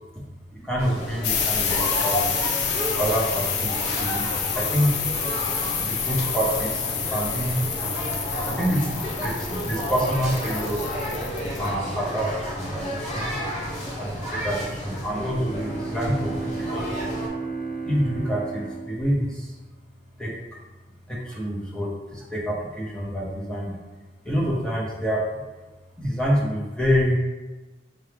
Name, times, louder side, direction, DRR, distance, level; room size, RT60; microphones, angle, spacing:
voice 1, 0.5-2.3 3.0-4.9 5.8-7.6 8.5-8.9 9.2-10.8 11.6-13.3 14.0-16.9 17.8-19.5 20.2-20.3 21.1-23.7 24.2-25.4 26.0-27.2, equal, 5° left, -5 dB, 0.6 m, -27 dB
sound 1, 0.8-17.3, equal, 40° left, 0.9 m, -31 dB
sound 2, 1.2-11.7, left 6 dB, 65° left, 0.4 m, -28 dB
Bowed string instrument, 15.0-20.2, right 4 dB, 45° right, 0.6 m, -34 dB
5.6 x 2.0 x 3.2 m, 1.2 s
head